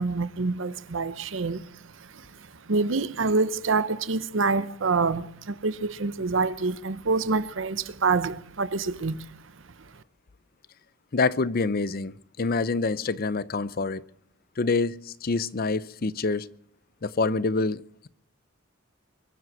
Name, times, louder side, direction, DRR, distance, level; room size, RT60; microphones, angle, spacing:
voice 1, 0.0-9.3, right 4 dB, 70° right, 0.8 m, -27 dB
voice 2, 11.1-14.0 14.6-16.5 17.0-18.1, left 3 dB, 50° left, 0.6 m, -26 dB
23.5 x 7.9 x 6.1 m
head